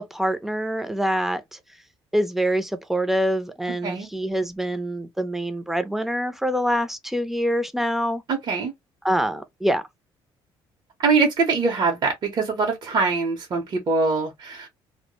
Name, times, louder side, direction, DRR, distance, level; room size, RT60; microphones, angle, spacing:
voice 1, 0.0-1.6 2.1-8.2 9.0-9.8, equal, 5° right, 0.4 m, -25 dB
voice 2, 8.3-8.7 11.0-14.7, right 4 dB, 45° right, 0.7 m, -23 dB
2.0 x 2.0 x 2.9 m
cardioid pair, 105°, 10 cm